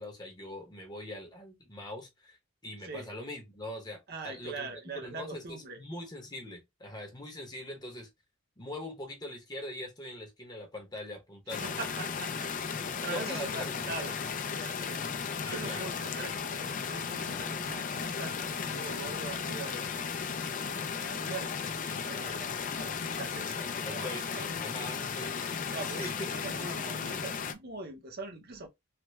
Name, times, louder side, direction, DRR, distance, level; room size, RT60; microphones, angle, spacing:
voice 1, 0.0-2.4 2.6-4.7 5.0-8.1 8.6-11.8 13.1-13.7 15.4-15.9 23.8-25.4 25.9-26.3, left 1 dB, 20° left, 0.8 m, -42 dB
voice 2, 4.1-5.8 11.6-15.0 15.4-20.0 20.3-20.7 21.0-25.1 25.7-28.7, right 3 dB, 50° right, 0.8 m, -43 dB
sound 1, 11.5-27.5, left 6 dB, 40° left, 0.4 m, -35 dB
3.3 x 2.1 x 3.0 m
head